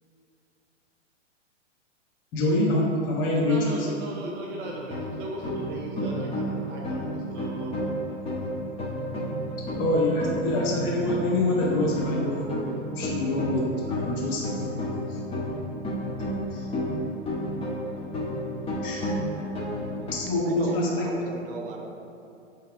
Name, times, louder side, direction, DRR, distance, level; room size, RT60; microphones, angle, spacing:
voice 1, 2.3-3.6 9.8-12.5 13.0-14.5 15.1-15.2 16.5-16.7 18.8-19.1 20.1-20.9, left 1 dB, 30° left, -5 dB, 1.3 m, -25 dB
voice 2, 3.5-7.9, right 1 dB, 25° right, -2 dB, 0.6 m, -37 dB
sound 1, 4.6-20.1, equal, 15° left, 1.1 m, -32 dB
voice 3, 20.4-21.9, right 4 dB, 45° right, 2 dB, 1.0 m, -36 dB
8.0 x 3.3 x 3.6 m, 2.6 s
hypercardioid pair, 115°, 37 cm